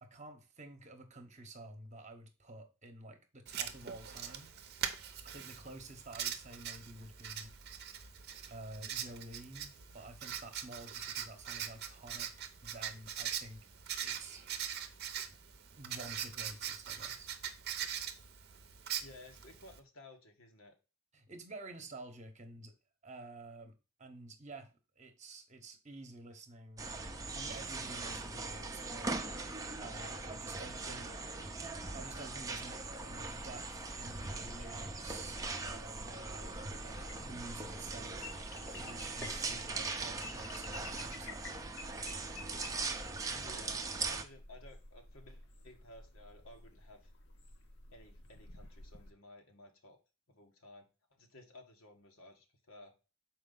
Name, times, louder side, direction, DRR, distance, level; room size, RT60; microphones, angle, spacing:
voice 1, 0.0-4.5 5.2-7.5 8.5-13.7 14.0-14.4 15.7-17.3 21.1-22.7 23.0-23.7 24.0-26.8 27.3-29.1 29.8-31.1 31.9-38.2 38.7-41.6, right 2 dB, 35° right, 1.1 m, -50 dB
Writing, 3.5-19.8, right 9 dB, 50° right, 0.8 m, -42 dB
voice 2, 19.0-20.7 30.9-31.5 43.3-43.8 44.1-47.1 47.9-50.0 50.3-52.9, left 1 dB, 70° left, 1.5 m, -56 dB
sound 1, 26.8-44.2, right 3 dB, 15° right, 0.7 m, -41 dB
sound 2, 32.8-49.1, left 2 dB, 55° left, 1.0 m, -52 dB
6.3 x 4.6 x 3.9 m
head